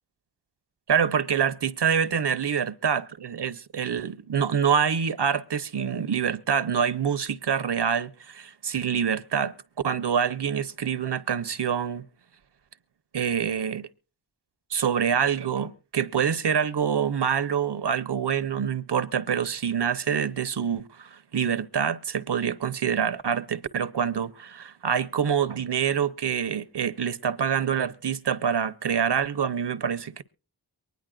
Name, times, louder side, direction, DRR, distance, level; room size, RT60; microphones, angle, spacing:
voice 1, 0.9-9.5 9.8-12.0 13.1-13.9 14.7-30.2, right 7 dB, 80° right, 0.9 m, -26 dB
23.5 x 10.5 x 2.4 m
wide cardioid pair, 75°, 41 cm